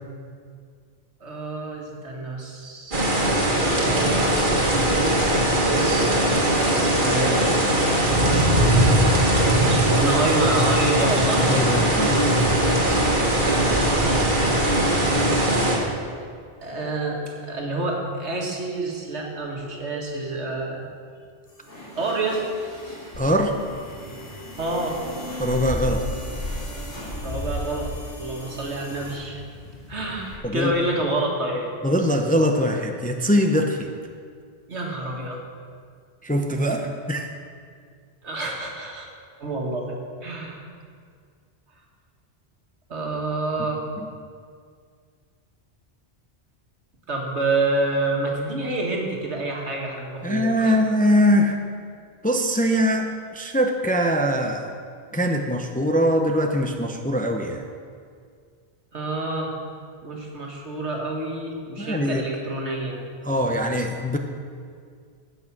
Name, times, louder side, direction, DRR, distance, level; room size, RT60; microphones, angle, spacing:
voice 1, 1.2-3.1 3.7-5.2 5.6-6.1 6.9-7.7 9.4-11.5 13.7-14.9 16.6-20.9 22.0-22.4 24.6-25.0 27.2-29.4 29.9-31.7 34.7-35.4 36.7-36.8 38.2-39.1 39.4-40.0 40.2-40.6 42.9-43.8 47.1-50.8 58.9-59.6 60.0-63.0, right 2 dB, 85° right, -1 dB, 2.1 m, -28 dB
sound 1, 2.9-15.8, right 1 dB, 50° right, 1.8 m, -20 dB
voice 2, 11.5-12.1 23.2-23.6 25.4-26.0 30.4-30.7 31.8-33.9 36.2-37.3 50.2-51.6 52.2-54.7 55.1-57.6 61.8-62.2 63.2-64.2, equal, 10° left, 4 dB, 0.5 m, -22 dB
sound 2, 21.5-29.2, left 1 dB, 85° left, 4.1 m, -39 dB
sound 3, 23.1-30.4, left 1 dB, 60° left, 2.5 m, -35 dB
15.5 x 6.1 x 6.0 m, 2.1 s
omnidirectional pair, 1.1 m